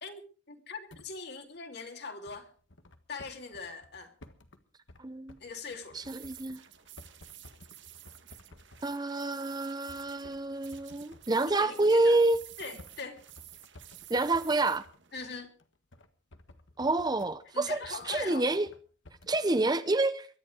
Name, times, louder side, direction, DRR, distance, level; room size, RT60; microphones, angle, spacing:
voice 1, 0.0-2.5 3.1-4.1 5.4-6.1 11.4-12.2 12.6-13.2 15.1-15.5 17.5-18.5, left 4 dB, 60° left, 3.0 m, -42 dB
sound 1, 0.9-1.1 1.5-1.6 2.3-4.6 4.9-5.0 5.3-8.9 9.4-9.5 9.9-18.8 19.0-19.4, left 1 dB, 75° left, 1.6 m, -55 dB
voice 2, 5.0-5.4 5.9-6.6 8.8-12.4 14.1-14.8 16.8-18.7 19.3-20.3, right 2 dB, 20° right, 0.8 m, -28 dB
sound 2, 6.0-15.1, right 12 dB, 70° right, 1.8 m, -52 dB
23.0 x 10.5 x 5.0 m
head